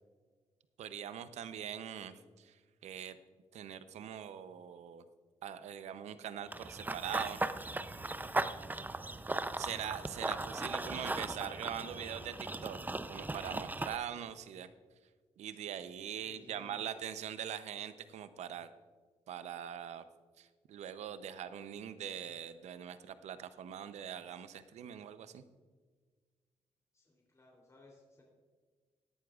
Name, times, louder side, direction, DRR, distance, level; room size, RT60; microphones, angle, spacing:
voice 1, 0.8-2.6 2.8-3.2 3.5-5.0 5.4-7.4 9.6-12.8 13.1-14.7 15.4-18.7 19.3-20.0 20.4-25.4, right 9 dB, 80° right, 12 dB, 0.7 m, -42 dB
Run / Bird vocalization bird call bird song, 6.5-14.0, right 2 dB, 15° right, 0.5 m, -38 dB
voice 2, 16.2-16.8 26.9-28.2, left 2 dB, 25° left, -2 dB, 3.2 m, -60 dB
17.0 x 11.0 x 2.4 m, 1.5 s
cardioid pair, 65°, 11 cm